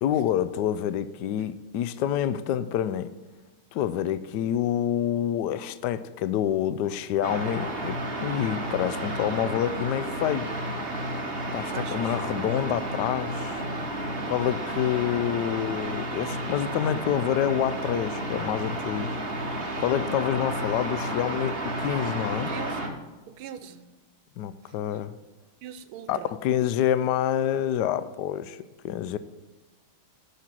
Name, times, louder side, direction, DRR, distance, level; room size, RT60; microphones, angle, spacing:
voice 1, 0.0-3.1 3.7-10.5 11.5-13.6 14.3-19.1 19.8-22.5 24.4-25.1 26.1-29.2, left 10 dB, 75° left, 0.9 m, -27 dB
sound 1, 7.2-22.9, right 1 dB, 30° right, 1.4 m, -32 dB
voice 2, 11.7-12.1 22.3-22.9 23.3-23.9 25.6-26.3, right 9 dB, 80° right, 1.6 m, -41 dB
12.0 x 5.8 x 7.5 m
omnidirectional pair, 2.3 m